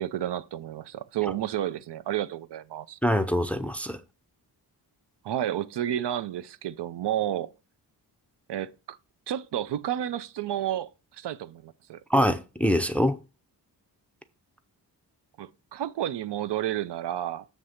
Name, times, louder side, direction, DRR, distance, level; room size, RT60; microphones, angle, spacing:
voice 1, 0.0-3.0 5.2-7.5 8.5-9.0 9.3-12.0 15.4-17.5, right 11 dB, 80° right, 0.6 m, -31 dB
voice 2, 3.0-4.0 12.1-13.2, equal, 5° left, 0.4 m, -24 dB
7.4 x 3.3 x 6.3 m
wide cardioid pair, 135°, 41 cm